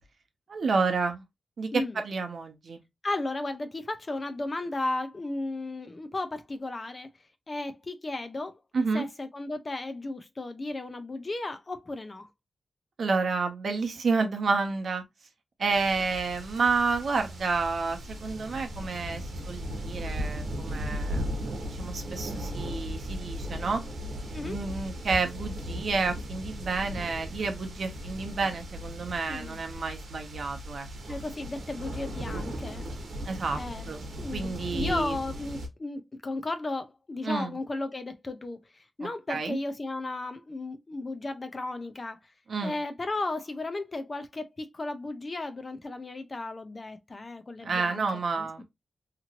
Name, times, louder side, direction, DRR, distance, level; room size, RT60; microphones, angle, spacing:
voice 1, 0.5-1.2 1.6-2.8 8.7-9.1 13.0-15.0 15.6-23.8 24.4-31.2 33.3-33.6 33.9-34.0 34.3-35.2 37.2-37.6 39.0-39.6 42.5-42.8 47.6-48.6, right 4 dB, 55° right, 0.7 m, -30 dB
voice 2, 3.0-7.1 7.5-8.5 8.9-12.3 24.3-24.6 29.3-29.6 31.1-32.9 33.6-33.9 34.2-42.2 42.6-48.1 48.4-48.6, left 2 dB, 25° left, 0.4 m, -34 dB
sound 1, 15.7-35.7, equal, 85° right, 0.9 m, -37 dB
2.9 x 2.5 x 2.8 m
wide cardioid pair, 180°, 0 cm